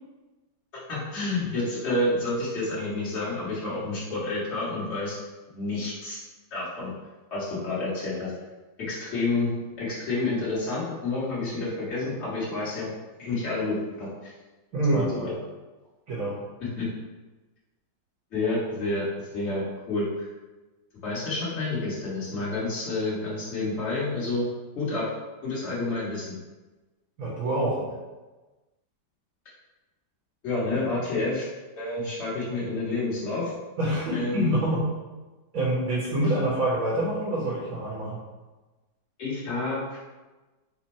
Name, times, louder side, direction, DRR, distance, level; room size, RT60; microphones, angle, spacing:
voice 1, 0.9-5.2 5.5-6.2 6.5-6.9 7.3-8.3 8.8-12.9 13.2-14.3 14.9-15.3 16.6-16.9 18.3-19.0 19.3-20.3 21.0-24.5 24.7-25.1 25.4-26.3 30.4-31.5 31.7-33.5 34.1-34.5 39.2-40.0, left 2 dB, 40° left, -8 dB, 1.3 m, -29 dB
voice 2, 14.7-15.1 16.1-16.4 27.2-27.9 33.8-34.9 35.5-38.2, right 1 dB, 55° right, -7 dB, 1.3 m, -26 dB
4.4 x 2.2 x 4.1 m, 1.2 s
omnidirectional pair, 2.1 m